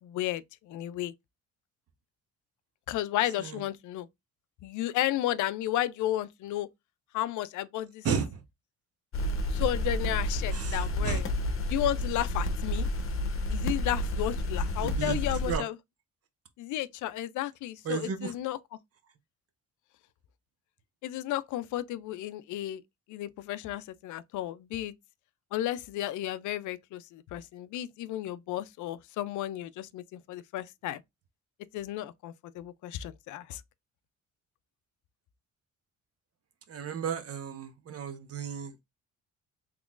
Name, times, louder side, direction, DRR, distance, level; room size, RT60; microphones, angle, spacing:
voice 1, 0.0-1.1 2.9-4.1 4.6-6.7 7.1-8.1 9.5-11.3 11.7-12.9 13.5-15.8 16.6-18.6 21.0-22.8 23.1-24.9 25.5-31.0 31.7-33.6, left 13 dB, 75° left, 0.5 m, -33 dB
voice 2, 8.0-8.4 10.5-11.2 14.8-15.2 15.5-15.6 17.8-18.3 36.7-38.8, right 7 dB, 50° right, 0.8 m, -33 dB
sound 1, 9.1-15.6, left 1 dB, 45° left, 0.8 m, -30 dB
3.7 x 3.0 x 2.4 m
cardioid pair, 90°, 30 cm